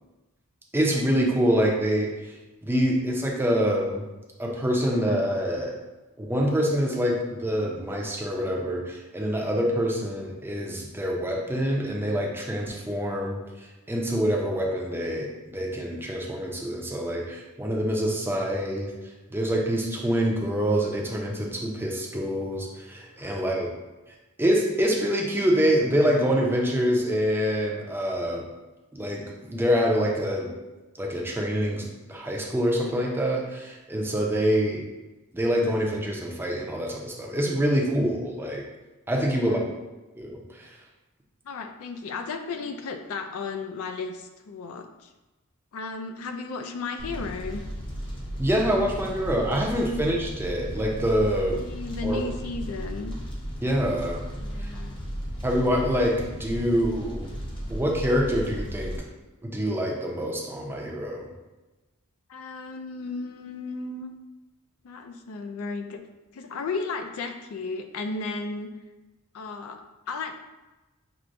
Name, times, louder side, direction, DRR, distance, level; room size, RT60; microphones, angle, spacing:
voice 1, 0.7-2.3 2.6-4.1 4.4-5.7 6.2-13.4 13.9-18.9 19.3-23.7 24.4-28.4 28.9-30.5 31.0-34.8 35.3-38.6 39.1-39.6 40.1-40.8 48.4-51.6 52.0-52.2 53.6-54.2 54.6-54.7 55.4-57.3 57.7-58.9 59.4-61.3, equal, 10° right, -1 dB, 0.5 m, -26 dB
voice 2, 23.2-23.5 39.3-39.7 41.4-45.1 45.7-47.7 51.5-53.2 54.4-55.0 62.3-64.1 64.8-66.0 66.3-68.7 69.3-69.8 70.1-70.3, left 4 dB, 70° left, 6 dB, 0.4 m, -34 dB
Fire, 47.0-59.0, equal, 25° left, 0.7 m, -35 dB
6.0 x 2.1 x 2.6 m, 1.1 s
head